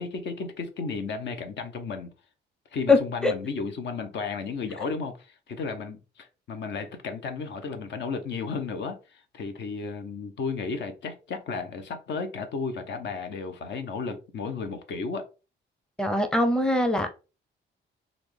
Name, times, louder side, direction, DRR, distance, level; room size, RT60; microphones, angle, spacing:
voice 1, 0.0-2.1 2.7-15.2, left 4 dB, 65° left, 0.8 m, -33 dB
voice 2, 2.9-3.3 4.8-4.9 16.0-17.1, left 2 dB, 5° left, 0.6 m, -22 dB
4.1 x 2.4 x 3.3 m
cardioid pair, 90°, 20 cm